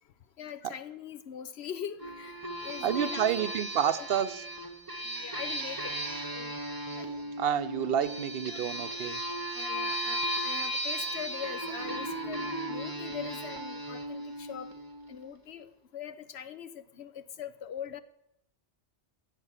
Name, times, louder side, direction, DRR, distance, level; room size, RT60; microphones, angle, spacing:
voice 1, 0.4-3.5 3.8-4.1 5.0-5.9 6.3-6.5 6.9-7.4 8.4-8.6 9.5-14.7 15.1-18.0, left 9 dB, 70° left, 13 dB, 1.1 m, -42 dB
sound 1, 2.0-15.2, right 1 dB, 20° right, 1.1 m, -36 dB
voice 2, 2.8-4.4 7.4-9.2, right 9 dB, 65° right, 13 dB, 0.8 m, -29 dB
16.5 x 7.6 x 7.3 m, 0.79 s
omnidirectional pair, 1.1 m